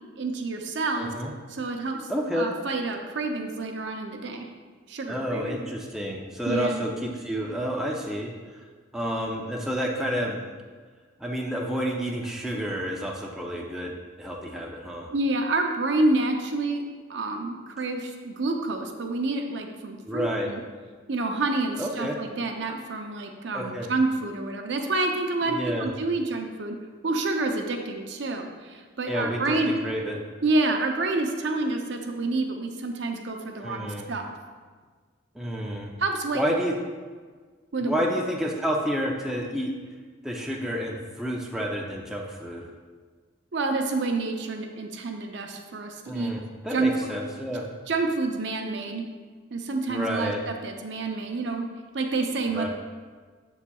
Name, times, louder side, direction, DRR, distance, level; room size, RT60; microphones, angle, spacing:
voice 1, 0.2-1.1 1.5-4.5 4.9-5.6 6.5-6.9 15.1-20.6 21.1-26.8 27.0-29.8 30.4-34.3 36.0-36.4 37.7-38.0 43.5-46.5 46.7-46.9 47.9-49.1 49.5-51.7 51.9-52.7, right 2 dB, 60° right, 4 dB, 0.6 m, -28 dB
voice 2, 1.0-1.3 2.1-2.5 5.1-8.3 8.9-10.4 11.2-15.1 20.0-20.5 21.8-22.2 23.5-23.9 25.4-25.9 29.1-30.2 33.6-34.1 35.3-35.9 36.3-36.7 37.8-39.7 40.2-42.7 46.0-47.7 49.9-50.4 52.5-52.7, equal, ahead, -2 dB, 0.5 m, -30 dB
7.0 x 6.9 x 2.3 m, 1.5 s
head